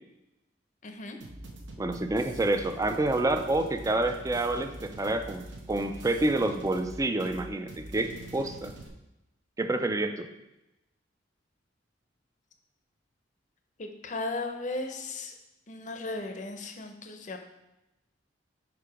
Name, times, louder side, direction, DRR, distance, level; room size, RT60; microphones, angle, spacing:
voice 1, 0.8-1.2 13.8-15.3 15.7-17.4, left 2 dB, 40° left, 6 dB, 0.6 m, -36 dB
sound 1, 1.2-8.9, right 1 dB, 80° right, 0.9 m, -44 dB
voice 2, 1.8-5.4 5.7-8.7 9.6-10.3, right 2 dB, 15° right, 7 dB, 0.4 m, -28 dB
4.9 x 4.8 x 4.9 m, 0.94 s
head